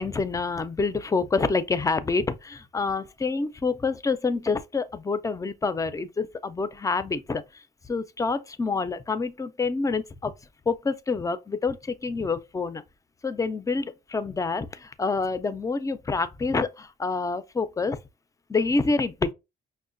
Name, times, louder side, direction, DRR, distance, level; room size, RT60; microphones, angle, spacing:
voice 1, 0.0-10.3 10.7-12.8 13.2-18.0 18.5-19.3, left 4 dB, 15° left, 0.4 m, -27 dB
5.5 x 2.1 x 2.5 m
cardioid pair, 90°, 20 cm